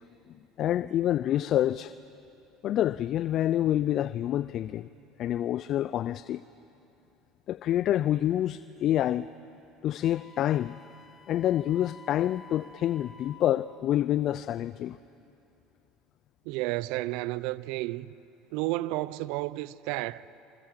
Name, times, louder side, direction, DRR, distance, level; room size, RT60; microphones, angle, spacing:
voice 1, 0.6-1.9 2.6-4.9 5.2-6.4 7.5-9.3 9.8-10.8 11.3-15.0, left 12 dB, 55° left, 0.5 m, -27 dB
Wind instrument woodwind instrument, 10.0-13.6, left 4 dB, 35° left, 1.4 m, -52 dB
voice 2, 16.5-18.1 18.5-20.3, right 18 dB, 70° right, 0.6 m, -31 dB
27.0 x 25.0 x 7.6 m
hypercardioid pair, 80°, 0 cm